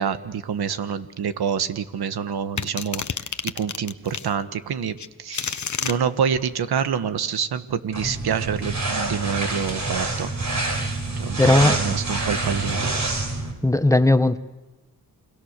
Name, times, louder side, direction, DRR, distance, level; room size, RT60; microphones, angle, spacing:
voice 1, 0.0-3.0 3.5-10.3 11.2-12.9, right 7 dB, 80° right, 11 dB, 1.5 m, -27 dB
sound 1, 2.6-4.3 5.0-6.0, left 6 dB, 50° left, 1.2 m, -29 dB
sound 2, 7.9-13.5, right 2 dB, 45° right, 6.5 m, -26 dB
voice 2, 11.4-12.0 13.6-14.4, left 2 dB, 10° left, 10 dB, 1.5 m, -17 dB
29.0 x 23.5 x 6.7 m, 1.1 s
supercardioid pair, 45°, 38 cm